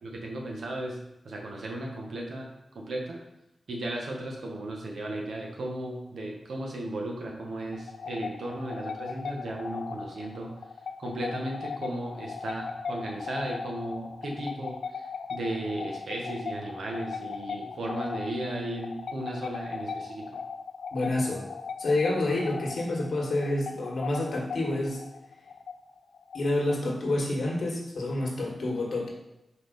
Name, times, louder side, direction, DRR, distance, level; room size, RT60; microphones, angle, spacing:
voice 1, 0.0-1.0 1.2-2.5 2.7-3.2 3.7-10.5 11.0-20.2, right 1 dB, 90° right, 0 dB, 1.3 m, -35 dB
sound 1, 7.7-27.1, left 5 dB, 85° left, 0.4 m, -38 dB
voice 2, 20.9-21.4 21.8-25.0 26.3-29.1, left 2 dB, 65° left, -1 dB, 1.6 m, -28 dB
4.8 x 4.2 x 5.2 m, 0.88 s
wide cardioid pair, 150°, 0 cm